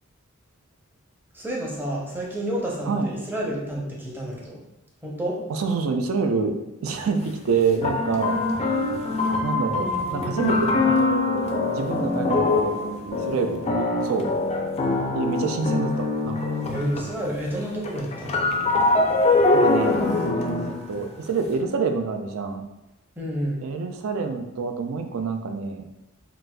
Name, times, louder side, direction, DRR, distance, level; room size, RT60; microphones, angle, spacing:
voice 1, 1.3-4.6 5.0-5.4 16.7-18.5 23.2-23.6, right 1 dB, 10° right, -4 dB, 0.6 m, -30 dB
voice 2, 5.5-8.4 9.4-13.6 14.0-14.3 15.1-16.6 19.5-20.1 20.6-22.6 23.6-25.8, right 5 dB, 70° right, 6 dB, 0.4 m, -27 dB
sound 1, 6.9-7.0 7.8-17.3 17.6-21.5, left 3 dB, 30° left, 0.3 m, -23 dB
3.8 x 2.4 x 2.2 m, 0.93 s
head